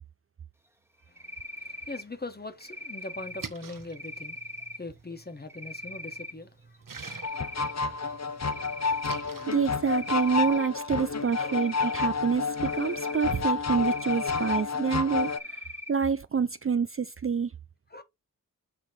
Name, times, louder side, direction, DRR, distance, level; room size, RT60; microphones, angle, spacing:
voice 1, 1.1-4.4 4.8-6.8 11.4-11.7 17.9-18.0, left 2 dB, 30° left, 1.4 m, -41 dB
Cricket, 1.2-2.0 2.6-3.5 3.9-4.8 5.5-6.3 6.7-7.7 8.1-9.3 9.9-10.7 11.2-12.1 12.6-13.4 13.8-14.6 15.1-15.9, left 1 dB, 5° right, 1.3 m, -40 dB
Splash splatter, 3.2-10.5, right 5 dB, 70° right, 1.2 m, -48 dB
sound 1, 7.2-15.4, left 4 dB, 50° left, 0.7 m, -30 dB
voice 2, 9.5-15.6 15.9-17.5, right 6 dB, 40° right, 0.4 m, -27 dB
8.0 x 3.3 x 4.3 m
wide cardioid pair, 100°, 34 cm